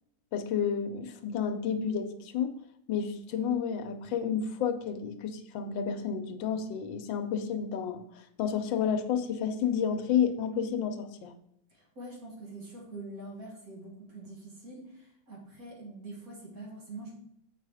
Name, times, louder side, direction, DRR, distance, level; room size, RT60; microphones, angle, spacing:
voice 1, 0.3-2.5 2.9-8.0 8.4-11.3, left 7 dB, 80° left, 8 dB, 1.4 m, -30 dB
voice 2, 11.7-17.1, right 2 dB, 50° right, -2 dB, 2.4 m, -45 dB
7.9 x 4.9 x 4.8 m, 0.76 s
omnidirectional pair, 2.1 m